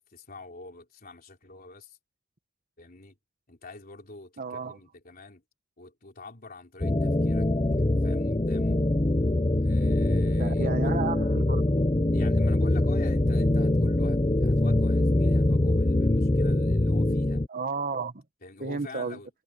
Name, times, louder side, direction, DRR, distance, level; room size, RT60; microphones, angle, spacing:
voice 1, 0.0-2.0 2.8-3.2 3.5-5.4 5.8-7.5 7.8-8.8 9.6-11.0 12.1-17.4 18.4-19.3, left 2 dB, 45° left, 3.5 m, -46 dB
voice 2, 4.4-4.8 10.4-11.8 12.1-12.2 17.5-18.2 18.6-19.2, right 4 dB, 45° right, 1.5 m, -33 dB
sound 1, 6.8-17.5, left 1 dB, 25° left, 0.7 m, -23 dB
head